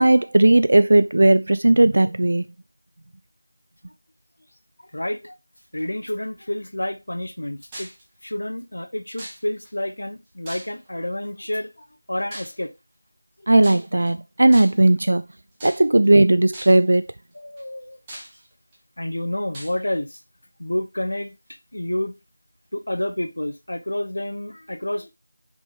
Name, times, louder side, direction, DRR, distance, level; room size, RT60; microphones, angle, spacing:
voice 1, 0.0-2.5 13.5-15.3 15.6-17.1, right 2 dB, 50° right, 0.3 m, -16 dB
voice 2, 4.9-5.4 5.7-7.9 8.2-12.7 13.4-13.5 15.8-15.9 17.3-18.0 19.0-20.2 20.6-22.1 22.7-25.1, left 1 dB, 65° left, 1.0 m, -29 dB
sound 1, 7.7-8.0 9.2-9.7 10.5-11.0 12.3-12.6 13.6-14.1 14.5-14.9 15.6-16.1 16.5-16.9 17.6-17.7 18.1-18.8 19.5-19.8, right 1 dB, 15° right, 1.4 m, -39 dB
6.4 x 5.3 x 3.1 m
figure-of-eight pair, 170°, 0 cm